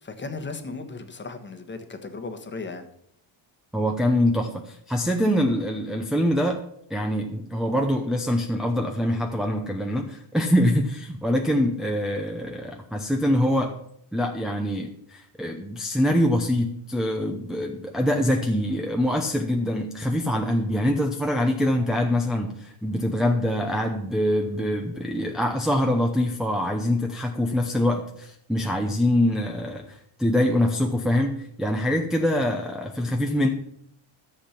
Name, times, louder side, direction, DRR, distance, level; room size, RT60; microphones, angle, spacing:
voice 1, 0.0-2.8, left 3 dB, 20° left, 1.3 m, -36 dB
voice 2, 3.7-6.6 6.9-13.7 14.1-33.5, left 1 dB, ahead, 0.7 m, -24 dB
13.5 x 7.4 x 5.9 m
cardioid pair, 160°, 49 cm